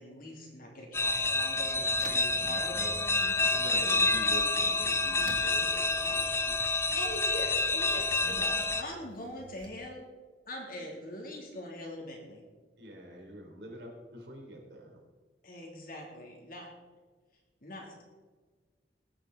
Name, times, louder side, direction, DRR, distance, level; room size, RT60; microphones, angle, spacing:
voice 1, 0.0-2.9 6.9-10.1 10.4-12.4 15.4-16.7 17.6-18.0, left 1 dB, 55° left, -1 dB, 2.9 m, -42 dB
sound 1, 0.9-8.8, left 3 dB, 15° left, 0.5 m, -28 dB
sound 2, 1.1-9.7, right 2 dB, 50° right, 1.7 m, -51 dB
voice 2, 2.3-2.8 3.1-6.6 12.8-15.0, right 1 dB, 70° right, 1 dB, 3.5 m, -46 dB
20.0 x 9.0 x 4.0 m, 1.4 s
head